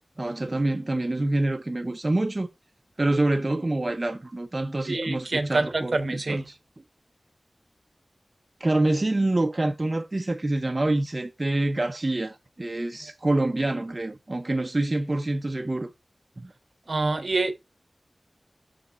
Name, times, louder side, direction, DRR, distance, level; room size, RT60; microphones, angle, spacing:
voice 1, 0.2-2.5 3.0-6.4 8.6-15.9 16.4-16.5, right 2 dB, 40° right, 0.7 m, -26 dB
voice 2, 4.9-6.5 16.9-17.5, right 3 dB, 70° right, 1.1 m, -26 dB
6.5 x 5.2 x 4.1 m
wide cardioid pair, 60°, 0 cm